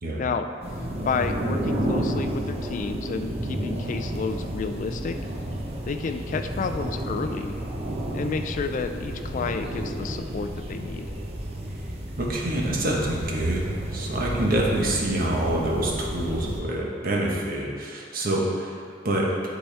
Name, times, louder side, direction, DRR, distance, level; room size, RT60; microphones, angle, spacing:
sound 1, 0.6-16.6, right 1 dB, 35° right, 0.8 m, -31 dB
voice 1, 1.0-5.2 5.9-7.6 8.1-11.1, left 5 dB, 45° left, 8 dB, 0.3 m, -30 dB
voice 2, 12.2-18.7 19.0-19.3, right 1 dB, 50° right, -2 dB, 1.1 m, -26 dB
11.0 x 4.2 x 3.4 m, 2.2 s
head